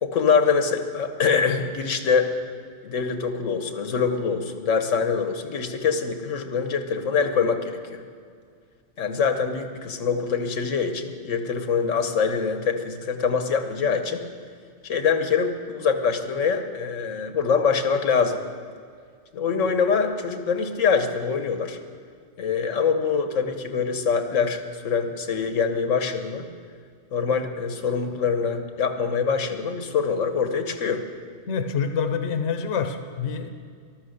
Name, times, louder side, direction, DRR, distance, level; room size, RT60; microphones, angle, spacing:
voice 1, 0.0-2.3 2.8-8.0 9.0-14.2 14.8-18.4 19.3-21.8 22.4-26.5 27.1-31.0, left 6 dB, 85° left, 7 dB, 1.4 m, -24 dB
voice 2, 31.5-33.5, left 6 dB, 70° left, 7 dB, 1.1 m, -26 dB
13.5 x 12.0 x 6.5 m, 2.1 s
omnidirectional pair, 1.3 m